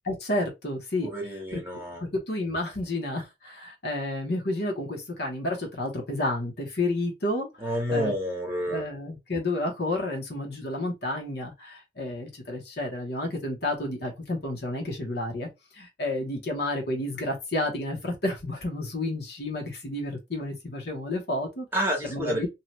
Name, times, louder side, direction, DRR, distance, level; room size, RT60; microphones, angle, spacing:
voice 1, 0.0-1.1 1.5-1.6 2.0-8.1 8.7-15.5 15.7-21.7 22.0-22.5, left 1 dB, 55° left, 1.0 m, -31 dB
voice 2, 1.0-2.0 7.6-8.8 21.7-22.5, equal, 10° right, 1.0 m, -29 dB
2.8 x 2.4 x 3.0 m
head